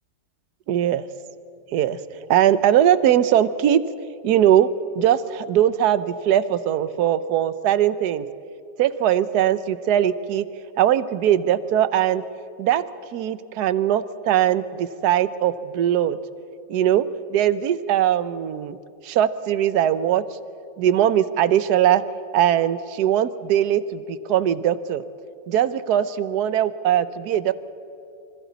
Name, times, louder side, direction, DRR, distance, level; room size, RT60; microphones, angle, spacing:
voice 1, 0.7-1.0 1.7-2.0 2.3-3.8 4.2-4.7 4.9-8.2 8.8-10.5 10.8-12.2 12.6-12.8 13.1-16.2 16.7-18.8 19.0-20.2 20.8-22.0 22.3-25.0 25.5-27.5, right 10 dB, 65° right, 13 dB, 1.3 m, -20 dB
28.0 x 26.0 x 4.1 m, 2.7 s
omnidirectional pair, 2.0 m